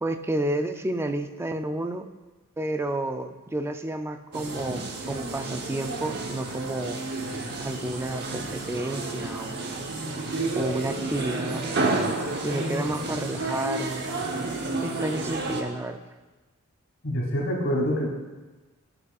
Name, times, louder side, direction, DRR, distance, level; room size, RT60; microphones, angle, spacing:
voice 1, 0.0-2.1 2.6-7.1 7.6-9.7 10.5-14.1 14.8-16.0, right 1 dB, 10° right, 7 dB, 0.3 m, -31 dB
sound 1, 4.3-15.6, right 2 dB, 50° right, 0.9 m, -31 dB
voice 2, 17.0-18.1, equal, 55° left, -3 dB, 2.2 m, -26 dB
12.5 x 6.7 x 2.4 m, 1.2 s
head